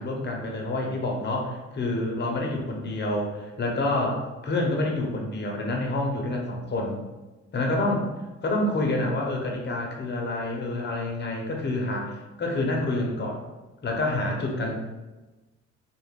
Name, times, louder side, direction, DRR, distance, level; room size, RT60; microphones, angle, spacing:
voice 1, 0.0-6.9 7.5-8.0 8.4-13.4 13.8-14.9, left 2 dB, 35° left, 0 dB, 0.7 m, -28 dB
2.5 x 2.4 x 3.3 m, 1.1 s
cardioid pair, 90°, 30 cm